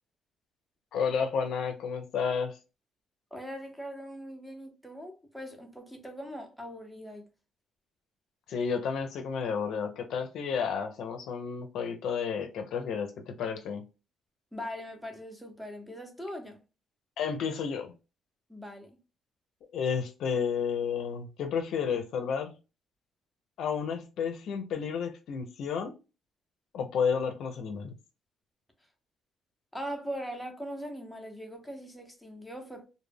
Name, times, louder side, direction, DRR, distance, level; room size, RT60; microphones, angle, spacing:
voice 1, 0.9-2.6 8.5-13.8 17.2-17.9 19.7-22.5 23.6-25.9 26.7-27.9, left 6 dB, 75° left, 0.5 m, -31 dB
voice 2, 3.3-7.3 14.5-16.6 18.5-18.9 29.7-32.9, equal, ahead, 0.7 m, -41 dB
2.1 x 2.1 x 3.3 m
cardioid pair, 90°, 0 cm